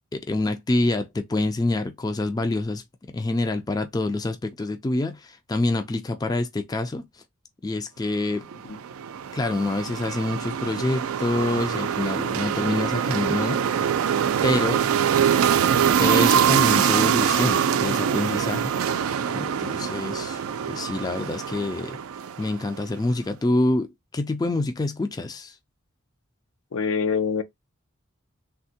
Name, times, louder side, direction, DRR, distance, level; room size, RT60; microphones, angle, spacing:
voice 1, 0.1-2.8 3.1-7.0 7.6-8.5 9.3-13.6 14.4-14.8 16.0-19.0 19.3-20.4 20.7-22.0 22.4-25.5, left 2 dB, 20° left, 0.3 m, -26 dB
sound 1, 8.5-22.9, right 8 dB, 90° right, 0.4 m, -24 dB
voice 2, 26.7-27.4, left 5 dB, 80° left, 0.5 m, -25 dB
3.4 x 2.1 x 2.7 m
head